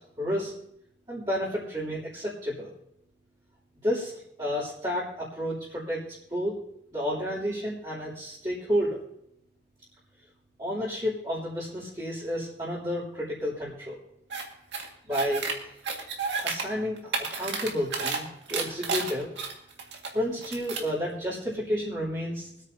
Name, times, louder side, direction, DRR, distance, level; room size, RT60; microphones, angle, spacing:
voice 1, 0.2-0.5 1.1-2.7 3.8-6.0 6.3-6.6 6.9-9.0 10.6-14.0 15.0-15.5 16.4-19.3 20.1-22.7, equal, 25° right, -10 dB, 3.1 m, -31 dB
sound 1, 14.3-14.4 14.7-15.5 15.8-16.6 17.0-18.2 18.5-20.1 20.4-20.9, right 4 dB, 80° right, 2.1 m, -31 dB
24.5 x 9.3 x 2.8 m, 0.80 s
head